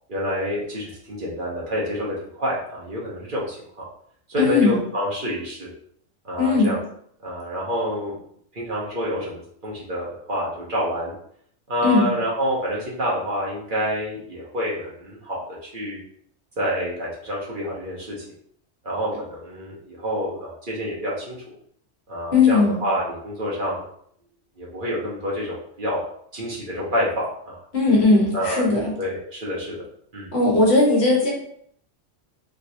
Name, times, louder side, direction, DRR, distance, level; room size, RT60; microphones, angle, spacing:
voice 1, 0.1-3.8 4.3-5.7 6.2-6.8 7.2-8.2 8.5-11.1 11.7-16.0 16.6-18.2 18.8-21.4 22.1-23.8 24.6-26.0 26.3-27.6 28.3-28.7 29.0-29.7 30.1-30.3, equal, 45° right, -5 dB, 1.0 m, -28 dB
voice 2, 4.4-4.8 6.4-6.7 11.8-12.1 22.3-22.8 27.7-28.9 30.3-31.3, left 3 dB, 60° left, -3 dB, 1.3 m, -18 dB
3.4 x 3.0 x 2.6 m, 0.66 s
omnidirectional pair, 1.3 m